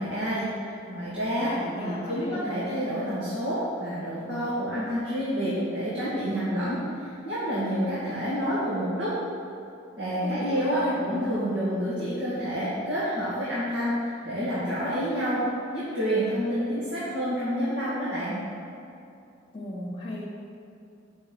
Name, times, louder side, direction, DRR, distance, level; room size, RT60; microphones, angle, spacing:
voice 1, 0.0-9.1 10.0-15.4 15.7-18.4, equal, 60° right, -10 dB, 2.4 m, -28 dB
voice 2, 1.5-2.4 10.2-11.0 19.5-20.3, left 1 dB, 25° left, -2 dB, 1.9 m, -36 dB
7.6 x 6.2 x 7.9 m, 2.7 s
head